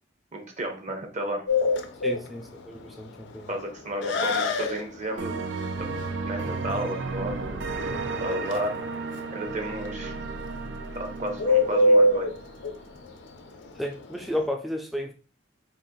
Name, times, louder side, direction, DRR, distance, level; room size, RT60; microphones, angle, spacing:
voice 1, 0.3-1.4 3.5-5.4 5.8-6.0 6.3-7.6 8.2-8.8 9.3-10.2 10.9-12.3, right 1 dB, 40° right, 4 dB, 0.9 m, -32 dB
Bird, 1.5-14.5, left 1 dB, 75° left, 0.5 m, -27 dB
voice 2, 2.0-3.5 13.8-15.1, left 1 dB, ahead, 3 dB, 0.4 m, -32 dB
sound 1, 5.2-12.8, right 3 dB, 80° right, 0.5 m, -33 dB
4.1 x 2.5 x 3.7 m, 0.35 s
head